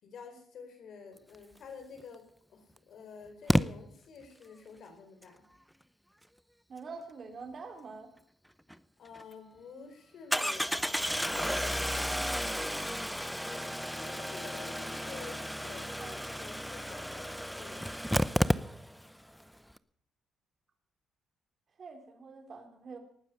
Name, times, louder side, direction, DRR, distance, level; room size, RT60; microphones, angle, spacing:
voice 1, 0.0-5.4 9.0-12.4 13.5-17.9, left 5 dB, 65° left, 6 dB, 4.7 m, -50 dB
Engine starting, 2.0-2.1 3.5-3.6 8.7-8.8 9.1-9.2 10.3-19.1 19.4-19.5 19.7-19.8, equal, ahead, 0.7 m, -32 dB
voice 2, 6.7-8.1 16.0-16.2 21.8-23.0, right 4 dB, 45° right, 5 dB, 3.5 m, -45 dB
19.0 x 9.7 x 6.7 m, 0.65 s
cardioid pair, 90°, 0 cm